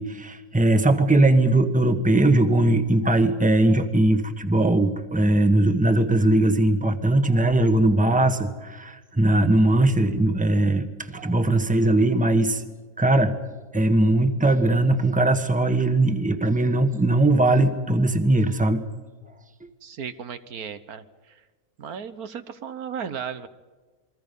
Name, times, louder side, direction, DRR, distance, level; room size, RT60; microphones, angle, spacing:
voice 1, 0.0-12.6 13.0-13.4 13.7-18.8, right 2 dB, 5° right, 8 dB, 1.3 m, -20 dB
voice 2, 19.8-21.4 21.8-23.5, right 7 dB, 75° right, 11 dB, 1.6 m, -35 dB
28.5 x 23.0 x 5.4 m, 1.4 s
omnidirectional pair, 1.6 m